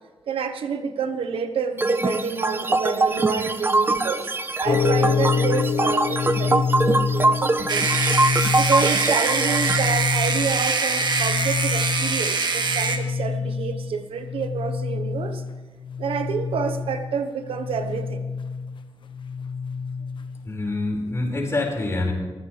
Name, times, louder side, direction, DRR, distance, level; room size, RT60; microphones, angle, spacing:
voice 1, 0.3-7.9 8.5-15.4 16.0-18.2, right 6 dB, 90° right, 8 dB, 1.2 m, -28 dB
sound 1, 1.8-9.8, right 2 dB, 25° right, 0.9 m, -23 dB
sound 2, 4.7-20.5, left 5 dB, 60° left, 1.1 m, -27 dB
sound 3, 7.7-13.0, right 4 dB, 55° right, 1.8 m, -23 dB
voice 2, 20.5-22.1, left 2 dB, 30° left, 0 dB, 5.3 m, -25 dB
23.5 x 16.0 x 3.4 m, 1.3 s
cardioid pair, 100°, 9 cm